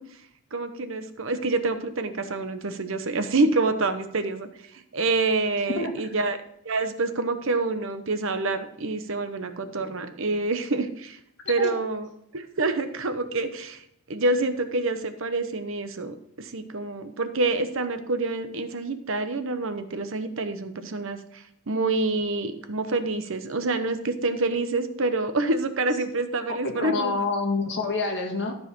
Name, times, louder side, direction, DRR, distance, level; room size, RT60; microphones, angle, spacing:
voice 1, 0.5-4.5 4.9-6.4 6.6-11.2 11.5-12.0 12.3-13.8 14.1-21.2 21.7-27.1, right 3 dB, 60° right, 9 dB, 0.9 m, -27 dB
voice 2, 26.6-28.5, left 3 dB, 50° left, 2 dB, 1.9 m, -27 dB
13.0 x 4.8 x 6.1 m, 0.76 s
head